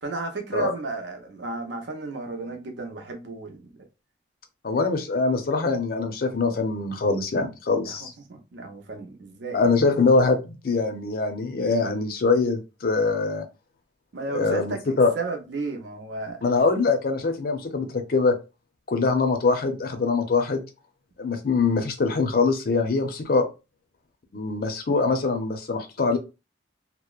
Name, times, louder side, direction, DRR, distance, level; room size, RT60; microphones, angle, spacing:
voice 1, 0.0-3.7 7.8-9.7 14.1-16.4, right 3 dB, 75° right, 0.6 m, -33 dB
voice 2, 4.6-8.1 9.5-13.4 14.3-15.1 16.4-18.4 18.9-20.6 21.2-23.5 24.3-26.2, left 4 dB, 55° left, 0.5 m, -23 dB
2.8 x 2.0 x 2.3 m
head